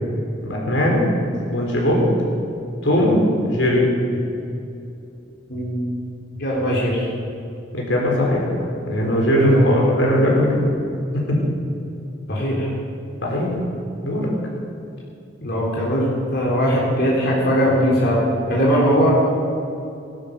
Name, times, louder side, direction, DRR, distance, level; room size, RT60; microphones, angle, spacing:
voice 1, 0.4-1.0 1.5-2.0 2.8-3.2 3.5-3.9 7.7-8.5 8.9-10.7 11.1-11.4 13.2-13.5 14.0-14.3, equal, 80° left, -2 dB, 4.0 m, -19 dB
voice 2, 5.5-5.9 6.4-7.1 9.4-9.8 12.3-12.7 15.4-18.2 18.5-19.2, equal, 60° left, -5 dB, 3.5 m, -20 dB
19.5 x 12.0 x 5.3 m, 2.6 s
head